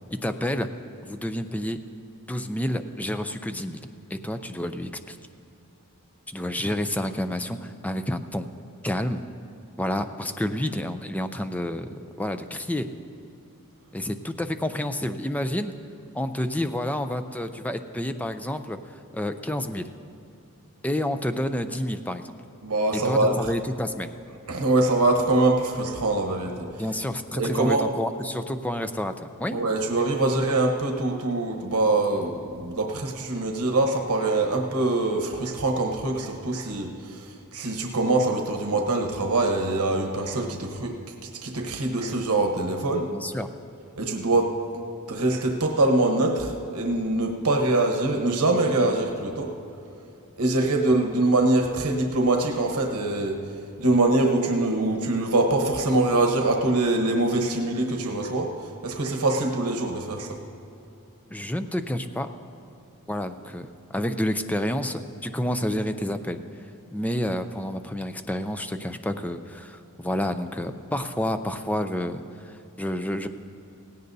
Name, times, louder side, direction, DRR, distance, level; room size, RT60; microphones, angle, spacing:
voice 1, 0.1-0.7 1.0-1.8 2.3-3.8 4.1-5.2 6.3-8.5 8.8-9.2 9.8-11.9 12.2-12.9 13.9-15.7 16.1-18.8 19.1-19.9 20.8-22.3 22.9-24.1 26.8-29.6 43.1-43.5 61.3-62.3 63.1-66.4 66.9-73.3, left 1 dB, 5° left, 9 dB, 0.4 m, -29 dB
voice 2, 22.6-23.4 24.5-26.7 27.4-27.8 29.5-37.2 37.5-41.0 41.4-43.1 44.0-44.6 45.1-49.5 50.4-53.4 53.8-58.5 58.8-60.4, right 2 dB, 80° right, 2 dB, 1.1 m, -24 dB
17.0 x 16.5 x 2.7 m, 2.7 s
head